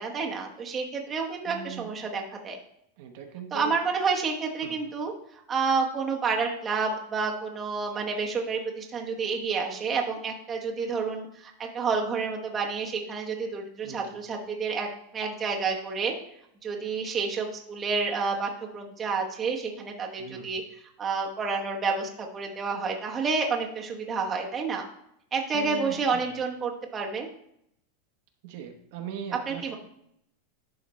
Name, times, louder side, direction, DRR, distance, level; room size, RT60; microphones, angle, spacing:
voice 1, 0.0-2.6 3.5-14.9 15.1-16.1 16.6-20.6 21.0-24.8 25.3-27.3 29.5-29.7, right 5 dB, 20° right, 0 dB, 1.0 m, -29 dB
voice 2, 1.5-1.9 3.0-3.8 4.6-4.8 13.8-14.2 20.2-20.5 25.5-26.3 28.4-29.7, right 8 dB, 55° right, 4 dB, 0.9 m, -40 dB
11.5 x 5.0 x 3.1 m, 0.74 s
supercardioid pair, 160°, 0 cm